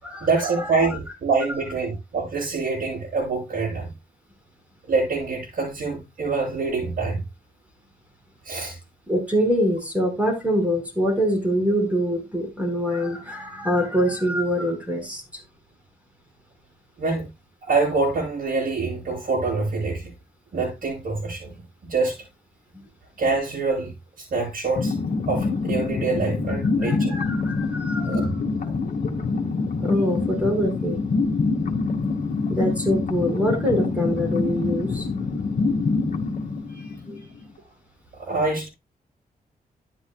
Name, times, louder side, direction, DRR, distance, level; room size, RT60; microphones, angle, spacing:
voice 1, 0.2-3.9 4.9-7.2 8.4-8.8 17.0-17.3 17.7-20.1 20.5-21.5 21.8-22.2 23.2-25.0 25.3-27.2 28.0-28.3 38.2-38.7, right 3 dB, 65° right, 7.8 m, -25 dB
voice 2, 9.1-15.2 26.8-28.3 29.8-31.0 32.5-35.1 36.7-37.2, equal, 10° right, 5.1 m, -24 dB
sound 1, 24.8-37.4, left 4 dB, 60° left, 1.8 m, -25 dB
12.5 x 10.0 x 2.3 m
cardioid pair, 105°, 15 cm